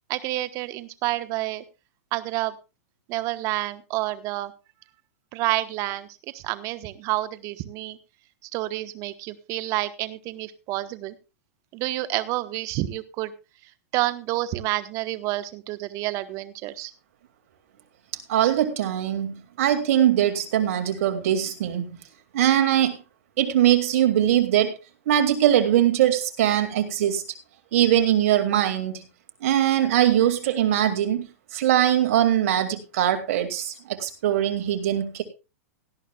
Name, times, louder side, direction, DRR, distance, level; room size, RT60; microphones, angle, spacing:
voice 1, 0.1-1.6 2.1-2.5 3.1-4.5 5.3-6.1 6.3-8.0 8.5-11.1 11.7-13.3 13.9-16.9, right 17 dB, 40° right, 13 dB, 1.1 m, -29 dB
voice 2, 18.3-22.0 22.3-23.0 23.4-24.7 25.1-27.2 27.7-29.0 29.4-31.3 31.5-35.2, right 11 dB, 65° right, 8 dB, 2.3 m, -21 dB
17.5 x 12.0 x 2.4 m, 0.29 s
hypercardioid pair, 125°, 8 cm